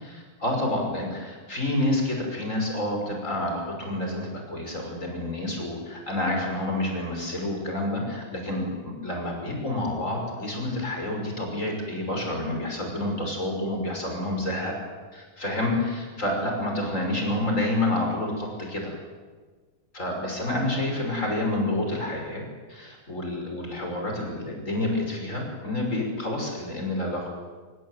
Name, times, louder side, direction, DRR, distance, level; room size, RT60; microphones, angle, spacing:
voice 1, 0.0-14.7 15.1-18.9 19.9-22.4 22.7-27.3, left 1 dB, 20° left, 1 dB, 6.0 m, -28 dB
25.0 x 19.0 x 9.3 m, 1.4 s
omnidirectional pair, 3.6 m